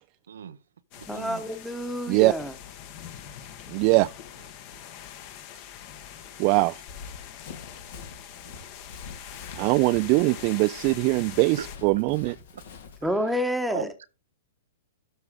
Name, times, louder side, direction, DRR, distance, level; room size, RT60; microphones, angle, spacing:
voice 1, 0.3-0.6 1.0-1.4 11.6-11.7 13.0-13.1 13.7-14.1, right 8 dB, 75° right, 0.6 m, -37 dB
sound 1, 0.9-11.8, left 10 dB, 45° left, 1.3 m, -44 dB
voice 2, 1.1-2.5 13.0-13.9, equal, ahead, 1.1 m, -28 dB
voice 3, 3.7-4.1 6.4-6.7 9.6-12.3, right 24 dB, 45° right, 0.3 m, -22 dB
Run, 6.9-13.1, left 5 dB, 65° left, 2.0 m, -45 dB
12.0 x 4.8 x 3.8 m
hypercardioid pair, 120°, 0 cm